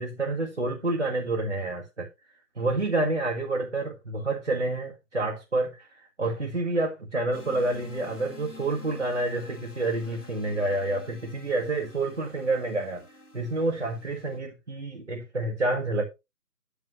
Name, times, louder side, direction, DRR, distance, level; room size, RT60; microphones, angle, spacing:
voice 1, 0.0-2.1 2.6-5.9 6.2-13.0 13.3-16.0, right 2 dB, 45° right, 1.8 m, -28 dB
sound 1, 7.3-14.4, left 1 dB, 70° left, 3.9 m, -49 dB
10.5 x 7.0 x 3.1 m
figure-of-eight pair, 170°, 48 cm